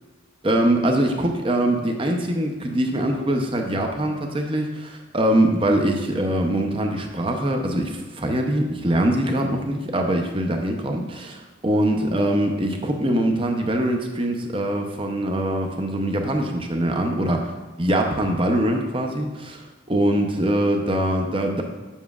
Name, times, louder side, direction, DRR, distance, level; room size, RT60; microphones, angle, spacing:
voice 1, 0.4-17.5 17.8-19.6 19.9-21.6, right 1 dB, 30° right, 3 dB, 0.6 m, -23 dB
7.2 x 7.0 x 2.4 m, 1.3 s
head